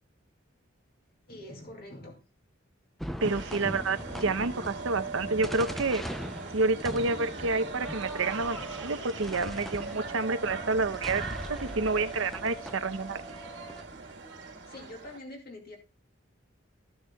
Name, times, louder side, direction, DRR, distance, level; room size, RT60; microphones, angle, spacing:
voice 1, 1.3-2.2 14.4-15.8, left 1 dB, 45° left, 2.4 m, -45 dB
sound 1, 3.0-13.8, equal, ahead, 0.5 m, -41 dB
sound 2, 3.2-15.2, right 4 dB, 60° right, 1.5 m, -40 dB
voice 2, 3.2-6.0 6.5-11.2 11.5-13.2, right 3 dB, 75° right, 0.7 m, -29 dB
14.5 x 7.2 x 2.3 m
head